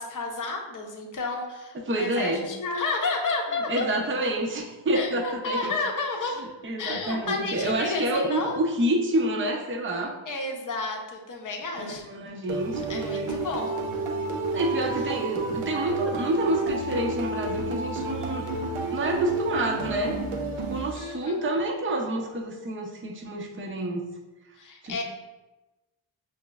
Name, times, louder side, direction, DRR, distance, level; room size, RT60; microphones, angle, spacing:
voice 1, 0.0-3.8 4.9-6.5 6.8-8.6 10.3-12.0 12.9-13.7 20.9-21.4 24.6-25.0, left 3 dB, 40° left, 1 dB, 0.6 m, -31 dB
voice 2, 1.7-2.5 3.7-5.7 6.4-10.2 11.7-13.3 14.5-18.5 18.9-20.1 20.7-24.1 24.8-25.0, right 1 dB, 25° right, 0 dB, 0.5 m, -28 dB
sound 1, 12.5-21.4, right 3 dB, 85° right, 0.6 m, -31 dB
5.6 x 2.0 x 2.3 m, 1.1 s
wide cardioid pair, 80°, 49 cm